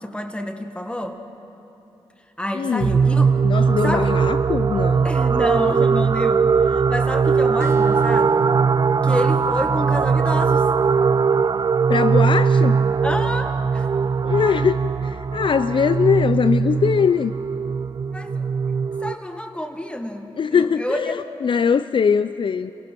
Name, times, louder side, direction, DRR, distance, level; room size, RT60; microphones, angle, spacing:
voice 1, 0.0-1.2 2.4-4.2 5.0-8.4 9.0-10.7 13.0-13.9 18.1-18.5 19.0-21.4, left 1 dB, 10° left, 6 dB, 1.7 m, -29 dB
voice 2, 2.5-2.9 3.4-5.1 11.9-12.8 14.2-17.3 20.4-22.7, left 6 dB, 55° left, 13 dB, 0.4 m, -21 dB
sound 1, 2.8-19.1, right 5 dB, 40° right, 0.4 m, -20 dB
sound 2, 7.6-12.7, right 1 dB, 25° right, 1.4 m, -36 dB
28.5 x 17.0 x 6.0 m, 3.0 s
cardioid pair, 60°, 10 cm